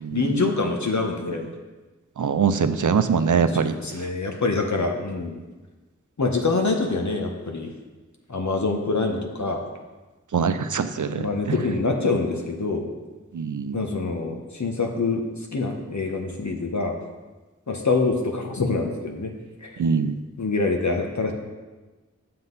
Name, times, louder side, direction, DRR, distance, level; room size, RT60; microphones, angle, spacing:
voice 1, 0.1-1.5 2.6-2.8 3.4-5.3 6.2-7.7 8.3-9.6 11.0-12.9 13.7-17.0 17.7-19.3 19.6-19.8 20.4-21.3, left 3 dB, 70° left, 3 dB, 1.1 m, -25 dB
voice 2, 2.2-3.7 10.3-11.6 13.3-13.8 19.8-20.1, right 6 dB, 80° right, 10 dB, 0.5 m, -23 dB
7.8 x 7.5 x 4.0 m, 1.2 s
wide cardioid pair, 55°, 30 cm